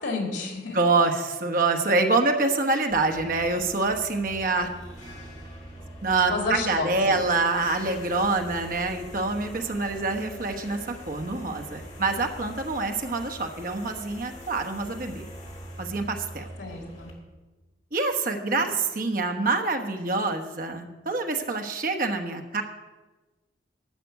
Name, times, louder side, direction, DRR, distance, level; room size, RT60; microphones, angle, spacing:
voice 1, 0.0-0.8 6.3-7.2 16.6-17.1 18.5-18.6, left 3 dB, 85° left, 0 dB, 3.0 m, -31 dB
voice 2, 0.7-4.7 6.0-15.3 15.8-16.5 17.9-22.6, right 3 dB, 50° right, 4 dB, 1.1 m, -26 dB
sound 1, 2.9-17.1, equal, 40° left, 2.9 m, -43 dB
12.5 x 5.9 x 8.1 m, 1.2 s
head